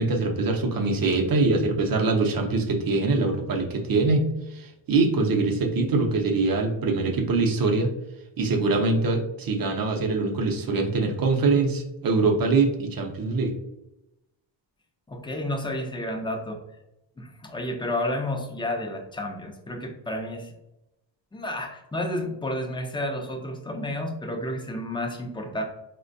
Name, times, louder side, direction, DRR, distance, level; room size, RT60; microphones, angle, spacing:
voice 1, 0.0-4.2 4.5-7.9 8.4-13.5, right 3 dB, 50° right, 3 dB, 0.6 m, -23 dB
voice 2, 15.1-16.6 17.2-20.5 21.3-25.6, left 1 dB, 10° left, 2 dB, 0.4 m, -31 dB
4.2 x 2.2 x 2.5 m, 0.90 s
cardioid pair, 125°, 47 cm